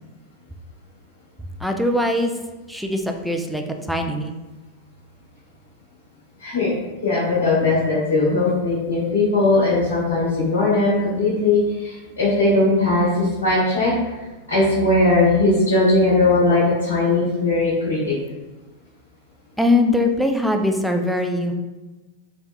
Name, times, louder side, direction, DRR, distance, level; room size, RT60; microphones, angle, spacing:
voice 1, 1.6-2.3 2.7-3.6 3.9-4.4 19.6-21.5, left 1 dB, ahead, 4 dB, 0.3 m, -21 dB
voice 2, 6.4-6.7 7.0-14.1 14.5-18.1, left 2 dB, 60° left, -9 dB, 1.1 m, -19 dB
3.3 x 2.8 x 2.3 m, 1.2 s
figure-of-eight pair, 90°, 0 cm